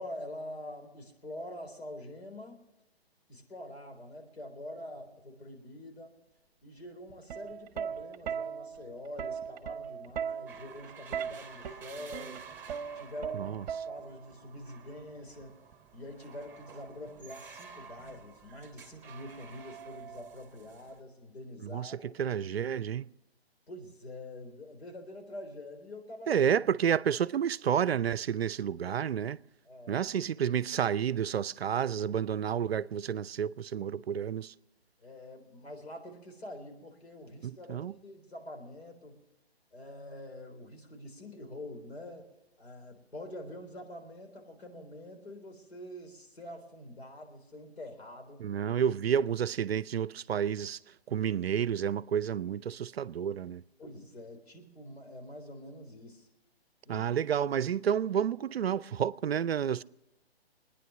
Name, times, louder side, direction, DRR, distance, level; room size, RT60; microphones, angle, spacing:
voice 1, 0.0-2.6 3.3-6.1 6.6-12.4 12.9-13.6 13.9-15.6 15.9-22.1 23.7-26.4 29.7-30.1 35.0-39.1 39.7-42.3 42.6-48.4 53.4-53.5 53.8-56.3 56.8-57.1, left 1 dB, 75° left, 4.0 m, -45 dB
Plucked string instrument, 7.1-14.3 15.4-15.7, right 7 dB, 40° right, 0.9 m, -38 dB
sound 1, 10.5-21.0, right 6 dB, 5° right, 2.0 m, -51 dB
voice 2, 13.3-13.8 21.6-23.1 26.3-29.4 29.9-34.5 37.4-37.9 48.4-53.6 56.9-59.8, right 8 dB, 70° right, 0.5 m, -30 dB
22.5 x 10.0 x 6.1 m
figure-of-eight pair, 140°, 32 cm